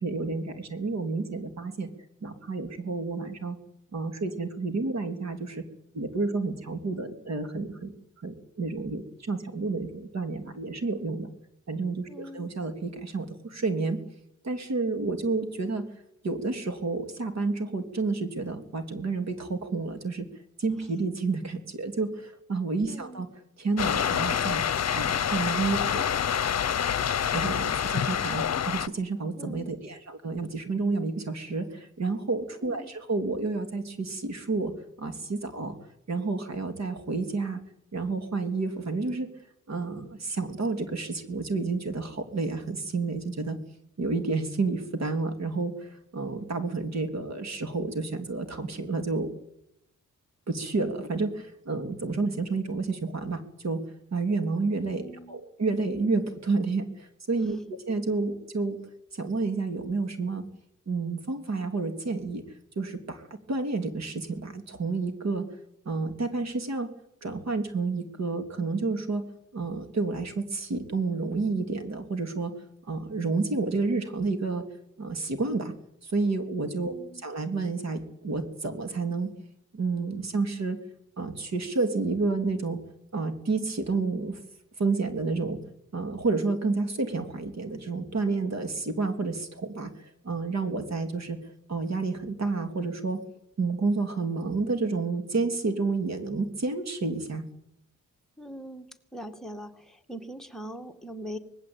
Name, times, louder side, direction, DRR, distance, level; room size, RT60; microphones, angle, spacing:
voice 1, 0.0-1.9 2.2-3.6 3.9-5.6 5.9-7.9 8.2-11.3 11.7-14.0 14.4-15.8 16.2-20.3 20.6-23.3 23.6-24.6 24.9-26.0 27.3-34.7 35.0-35.7 36.1-37.6 37.9-39.3 39.7-43.6 44.0-49.3 50.5-53.8 54.1-57.6 57.9-58.8 59.1-60.5 60.9-62.4 62.7-63.2 63.5-65.4 65.8-66.9 67.2-69.2 69.5-72.5 72.9-74.6 75.0-75.7 76.0-76.9 77.2-79.3 79.7-80.8 81.2-82.8 83.1-84.4 84.8-85.6 85.9-89.9 90.2-91.4 91.7-93.2 93.6-97.4, right 3 dB, 55° right, 7 dB, 3.3 m, -30 dB
voice 2, 12.1-12.4 22.9-23.2 29.4-29.9 32.6-33.0 54.9-55.4 57.5-57.6 76.9-77.3 98.4-101.4, right 1 dB, ahead, 4 dB, 2.1 m, -42 dB
sound 1, 23.8-28.9, left 8 dB, 55° left, 0.9 m, -27 dB
25.5 x 20.0 x 9.0 m, 0.79 s
wide cardioid pair, 145°, 32 cm